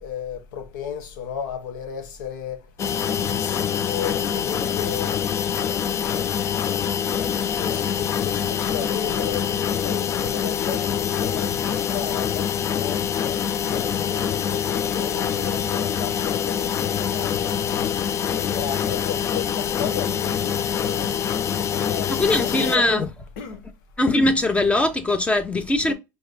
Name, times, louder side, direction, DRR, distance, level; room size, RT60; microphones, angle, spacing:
voice 1, 0.0-2.6 3.0-5.9 7.6-13.0 13.6-17.9 18.3-23.1 23.4-23.6 25.8-25.9, left 8 dB, 80° left, 1.2 m, -34 dB
sound 1, 2.8-22.8, left 8 dB, 30° left, 0.3 m, -25 dB
voice 2, 22.1-23.1 24.0-25.9, left 2 dB, 10° left, 0.8 m, -21 dB
5.0 x 3.4 x 2.2 m
supercardioid pair, 130°, 10 cm